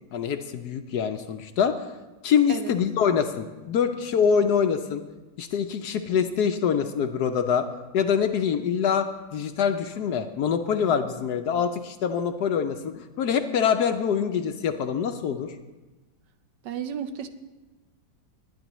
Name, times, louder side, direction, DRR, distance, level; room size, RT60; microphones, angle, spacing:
voice 1, 0.1-1.8 2.2-5.0 5.4-7.6 7.9-15.5, left 7 dB, 70° left, 7 dB, 1.1 m, -25 dB
voice 2, 16.6-17.3, right 8 dB, 70° right, 9 dB, 1.2 m, -32 dB
21.0 x 9.7 x 3.0 m, 1.2 s
omnidirectional pair, 2.0 m